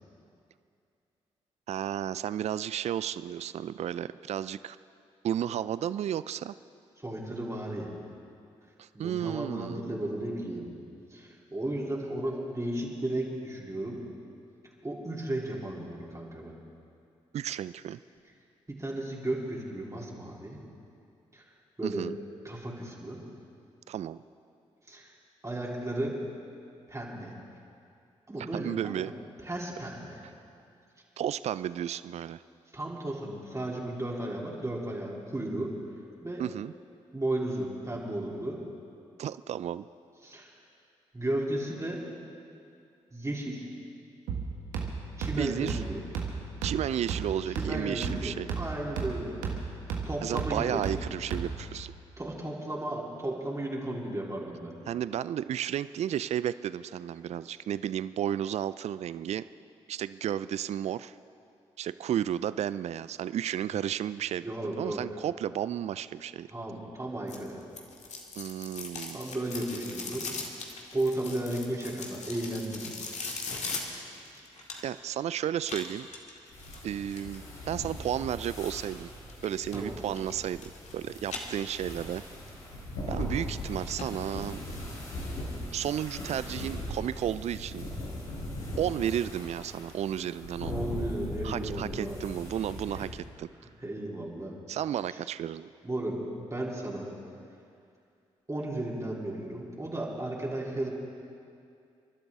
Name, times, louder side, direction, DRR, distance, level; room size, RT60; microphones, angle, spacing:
voice 1, 1.7-4.8 5.2-6.5 8.8-9.8 17.3-18.0 21.8-22.1 23.9-24.2 28.5-29.1 31.2-32.4 36.4-36.7 39.2-39.9 45.3-45.8 46.6-48.5 50.2-51.9 54.9-59.4 59.9-61.1 61.8-64.5 64.8-66.5 68.4-69.2 74.8-76.1 76.8-79.1 79.4-82.2 83.1-84.6 85.7-87.9 88.8-90.7 91.4-93.5 94.7-95.7, right 10 dB, 55° right, 16 dB, 0.4 m, -33 dB
voice 2, 7.0-7.9 8.9-10.7 11.1-14.0 14.8-16.6 18.7-20.6 21.3-21.4 21.8-22.0 22.4-23.2 24.9-25.1 25.4-26.2 26.9-27.3 28.3-29.1 29.4-30.2 32.7-35.7 36.2-36.4 37.1-38.6 40.2-40.5 41.1-42.0 43.1-43.7 45.2-46.0 47.5-49.4 50.0-50.8 52.2-54.7 64.4-65.0 66.5-67.6 69.1-70.3 70.9-73.1 79.7-80.0 90.6-92.2 92.9-93.1 93.8-94.5 95.8-97.1 98.5-100.9, right 1 dB, 20° right, -4 dB, 3.4 m, -34 dB
sound 1, 44.3-51.8, right 5 dB, 80° right, 1.6 m, -35 dB
sound 2, 67.3-75.1 75.6-77.4 79.3-79.8 80.1-80.9 81.2-82.1 82.5-82.6 83.2-83.3 83.6-83.7 84.0-84.1 84.4-84.5, left 4 dB, 55° left, 2.0 m, -40 dB
sound 3, 76.5-93.1, left 1 dB, 80° left, 4.4 m, -39 dB
29.5 x 11.5 x 3.6 m, 2.5 s
hypercardioid pair, 40°, 14 cm